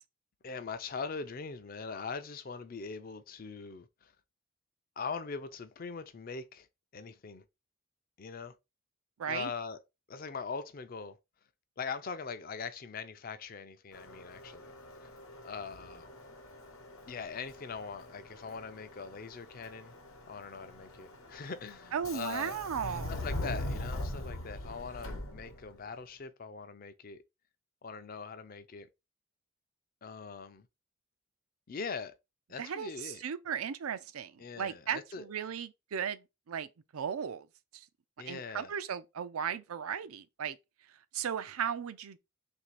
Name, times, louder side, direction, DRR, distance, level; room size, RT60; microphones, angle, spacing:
voice 1, 0.4-4.1 5.0-6.7 6.9-7.4 8.2-8.5 9.3-9.8 10.1-11.2 11.8-14.7 15.0-15.1 15.4-16.1 17.1-19.9 20.3-22.6 23.1-27.2 27.8-28.9 30.0-30.7 31.7-32.1 32.5-33.2 34.4-35.2 38.2-38.7, left 5 dB, 40° left, 0.4 m, -41 dB
voice 2, 9.2-9.5 21.9-23.1 32.6-37.5 37.7-37.9 38.2-40.6 40.9-42.2, right 8 dB, 85° right, 0.4 m, -36 dB
Subway metro underground, 13.9-25.9, left 1 dB, 80° left, 0.9 m, -42 dB
3.3 x 2.7 x 4.6 m
head